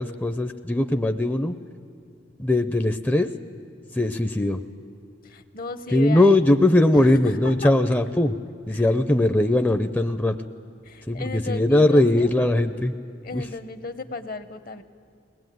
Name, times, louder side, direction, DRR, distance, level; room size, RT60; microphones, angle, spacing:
voice 1, 0.0-1.6 2.4-3.3 3.9-4.6 5.9-8.4 8.7-10.4 11.1-13.0 13.3-13.5, left 1 dB, 10° left, 7 dB, 0.5 m, -20 dB
voice 2, 5.2-7.7 8.7-8.9 10.8-12.3 13.2-14.8, left 3 dB, 55° left, 11 dB, 1.0 m, -35 dB
22.0 x 19.0 x 9.3 m, 2.3 s
head